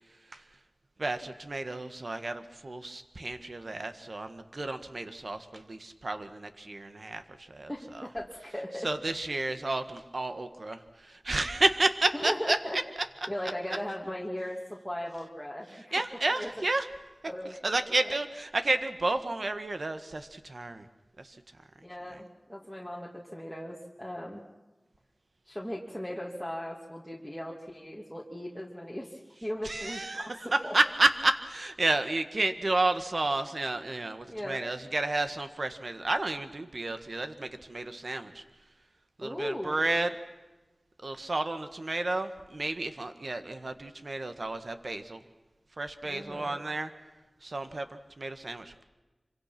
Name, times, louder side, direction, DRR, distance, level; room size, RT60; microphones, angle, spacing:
voice 1, 1.0-8.1 8.8-12.6 15.9-16.9 17.6-20.8 21.2-21.4 22.1-22.2 29.6-30.4 30.7-38.4 39.2-40.1 41.0-45.2 45.8-46.9 47.4-48.8, right 2 dB, 65° right, 9 dB, 1.7 m, -31 dB
voice 2, 7.7-8.9 12.2-12.8 13.3-15.9 16.3-16.6 17.3-18.2 21.8-24.4 25.4-30.2 30.6-30.7 34.3-34.6 39.2-39.9 46.0-46.6, equal, ahead, -3 dB, 2.9 m, -38 dB
26.0 x 25.5 x 6.1 m, 1.2 s
wide cardioid pair, 55°, 0 cm